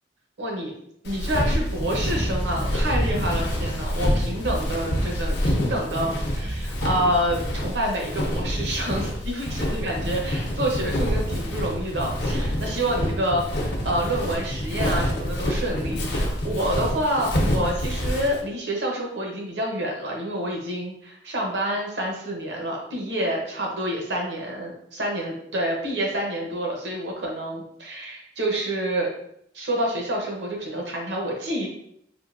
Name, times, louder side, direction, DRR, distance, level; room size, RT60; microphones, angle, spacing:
voice 1, 0.4-0.7 1.0-29.1 29.5-31.7, right 1 dB, 70° right, 0 dB, 0.9 m, -28 dB
Walk footsteps, 1.1-18.4, equal, 65° left, 0.7 m, -27 dB
sound 1, 1.8-7.8, equal, 40° right, 0.5 m, -31 dB
3.6 x 2.6 x 2.5 m, 0.72 s
head